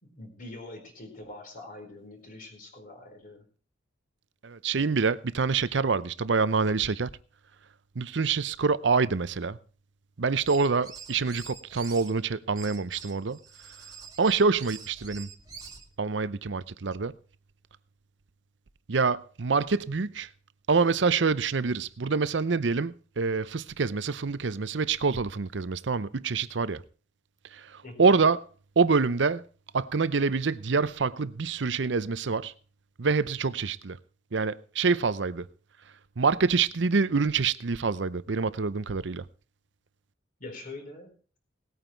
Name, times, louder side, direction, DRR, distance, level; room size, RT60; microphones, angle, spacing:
voice 1, 0.0-3.4 27.8-28.1 40.4-41.1, left 2 dB, 45° left, 4.5 m, -44 dB
voice 2, 4.4-7.1 8.0-9.6 10.2-13.4 14.2-15.3 16.0-17.1 18.9-20.3 20.7-26.8 27.5-28.4 28.8-29.4 29.7-32.5 33.0-34.0 34.3-35.5 36.2-39.2, right 4 dB, 65° right, 0.6 m, -26 dB
sound 1, 10.3-12.1 12.6-15.9, right 6 dB, 20° right, 2.0 m, -45 dB
18.5 x 9.2 x 4.5 m
head